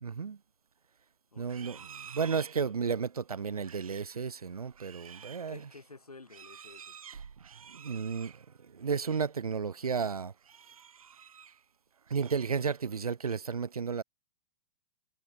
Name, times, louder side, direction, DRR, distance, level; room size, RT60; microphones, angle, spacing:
voice 1, 0.0-0.4 1.4-5.6 7.7-8.3 8.7-10.3 12.1-14.0, right 6 dB, 90° right, 0.6 m, -33 dB
voice 2, 1.3-1.9 5.5-7.0, left 3 dB, 90° left, 3.7 m, -52 dB
Livestock farm animals working animals, 1.4-9.3 9.7-10.0 10.4-11.6 12.0-13.0, right 7 dB, 70° right, 4.8 m, -52 dB
figure-of-eight pair, 110°, 18 cm